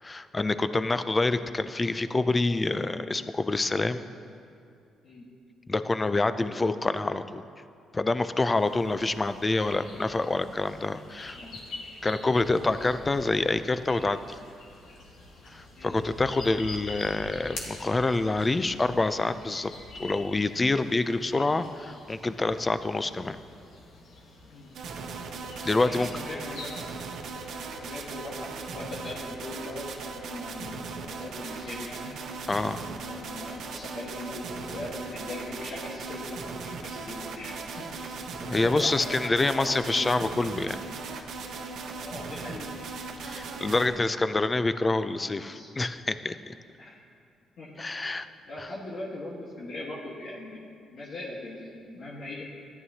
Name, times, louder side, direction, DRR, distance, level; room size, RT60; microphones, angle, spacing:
voice 1, 0.0-4.0 5.7-7.4 7.9-11.4 12.0-14.4 15.5-23.4 25.6-26.1 32.5-32.9 38.5-40.8 43.2-46.5 47.8-48.3 48.6-48.7, left 2 dB, 25° left, 12 dB, 0.4 m, -27 dB
sound 1, 8.5-26.8, left 2 dB, 85° left, 1.6 m, -46 dB
voice 2, 11.2-11.7 15.8-16.0 24.5-24.7 25.8-27.0 27.8-32.2 33.0-40.3 42.0-42.8 45.2-45.7 46.8-47.0 47.6-50.7 50.9-52.5, left 1 dB, 60° left, -5 dB, 1.5 m, -40 dB
sound 2, 24.7-43.9, right 4 dB, 75° right, 0.9 m, -38 dB
14.0 x 11.0 x 2.8 m, 2.5 s
cardioid pair, 90°, 0 cm